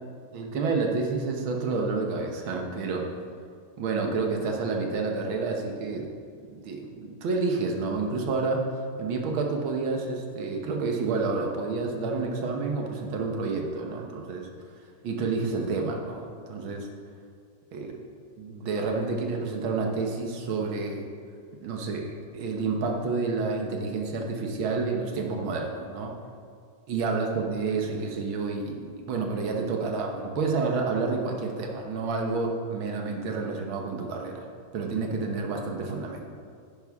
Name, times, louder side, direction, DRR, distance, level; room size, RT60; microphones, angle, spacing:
voice 1, 0.3-3.1 3.8-6.1 6.5-8.6 9.0-14.5 15.0-16.9 17.7-18.0 18.4-21.1 21.6-26.1 26.9-34.5 34.7-36.3, right 4 dB, 75° right, 2 dB, 1.9 m, -29 dB
10.0 x 9.8 x 3.6 m, 2.2 s
omnidirectional pair, 2.2 m